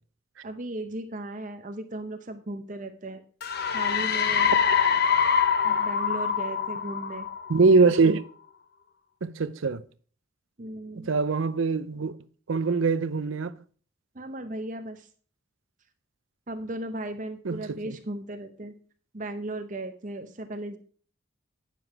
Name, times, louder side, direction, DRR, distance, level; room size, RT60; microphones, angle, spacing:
voice 1, 0.4-3.2 3.7-4.5 5.6-7.3 10.6-11.1 14.1-15.1 16.5-18.7 19.1-20.8, right 1 dB, 40° right, 0.8 m, -36 dB
sound 1, 3.4-8.0, left 7 dB, 50° left, 0.8 m, -25 dB
voice 2, 7.5-8.2 9.2-9.8 10.9-12.1 12.5-13.5 17.5-17.6 17.9-18.0, right 4 dB, 80° right, 0.6 m, -22 dB
9.4 x 6.9 x 4.7 m
head